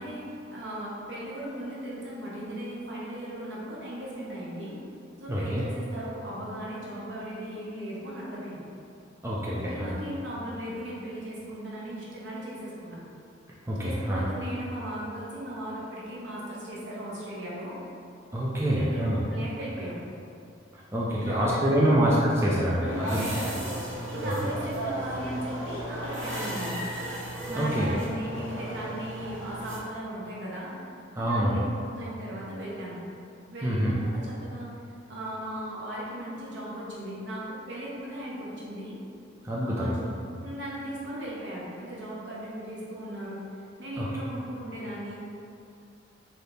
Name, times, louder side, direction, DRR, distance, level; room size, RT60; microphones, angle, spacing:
voice 1, 0.0-4.8 5.2-8.7 9.5-13.0 13.8-17.8 18.7-19.0 19.3-20.0 21.1-21.9 22.8-23.6 24.1-26.9 27.5-30.7 31.2-33.0 33.5-34.7 35.1-38.9 39.6-40.0 40.4-43.4 43.8-45.3, equal, 65° right, -6 dB, 1.0 m, -37 dB
voice 2, 5.3-5.6 9.2-9.9 13.7-14.2 18.3-19.2 20.7-23.2 24.2-24.3 27.5-27.9 31.2-31.6 33.6-33.9 39.4-40.0 44.0-44.1, equal, 15° right, -6 dB, 0.4 m, -26 dB
sound 1, 22.9-29.8, right 1 dB, 90° right, 1.0 m, -35 dB
3.4 x 2.7 x 4.0 m, 2.5 s
head